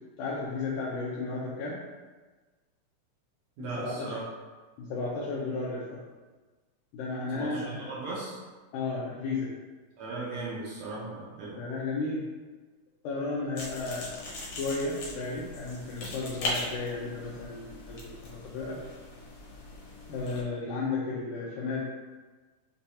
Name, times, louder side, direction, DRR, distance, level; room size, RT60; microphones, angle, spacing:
voice 1, 0.2-1.8 3.6-4.1 4.8-6.0 6.9-7.9 8.7-9.5 11.6-12.3 13.0-14.1 14.5-18.8 20.1-21.8, left 3 dB, 85° left, -6 dB, 2.2 m, -33 dB
voice 2, 3.6-4.2 7.3-8.4 10.0-11.6, right 3 dB, 75° right, -6 dB, 1.5 m, -37 dB
sound 1, 13.6-20.4, left 2 dB, 65° left, 1.6 m, -39 dB
6.5 x 2.3 x 2.8 m, 1.3 s
omnidirectional pair, 3.8 m